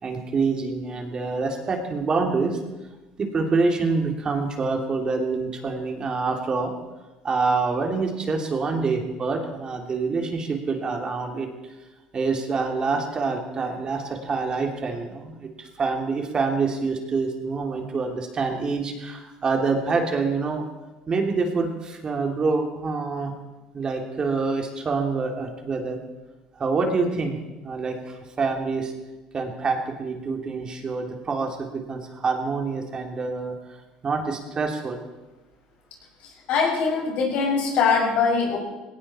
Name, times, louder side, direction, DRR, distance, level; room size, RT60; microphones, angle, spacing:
voice 1, 0.0-2.6 3.2-6.7 7.2-11.5 12.1-20.6 21.1-23.3 23.7-26.0 26.6-27.4 27.6-28.9 29.3-33.5 34.0-35.0, right 4 dB, 35° right, 3 dB, 3.0 m, -26 dB
voice 2, 36.2-38.6, left 5 dB, 65° left, 0 dB, 6.2 m, -22 dB
18.5 x 17.5 x 4.4 m, 1.1 s
supercardioid pair, 90°, 3 cm